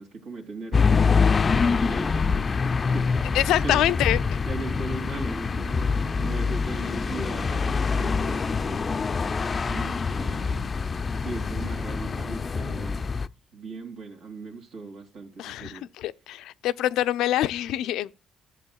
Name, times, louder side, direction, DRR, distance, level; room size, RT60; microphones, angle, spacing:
voice 1, 0.0-3.9 4.5-9.1 9.7-10.7 11.2-13.1 13.5-15.8, right 3 dB, 75° right, 2.6 m, -39 dB
sound 1, 0.7-13.3, left 5 dB, 30° left, 0.4 m, -25 dB
voice 2, 3.3-4.2 15.4-18.2, left 13 dB, 85° left, 0.5 m, -25 dB
13.5 x 7.7 x 2.3 m
cardioid pair, 115°, 0 cm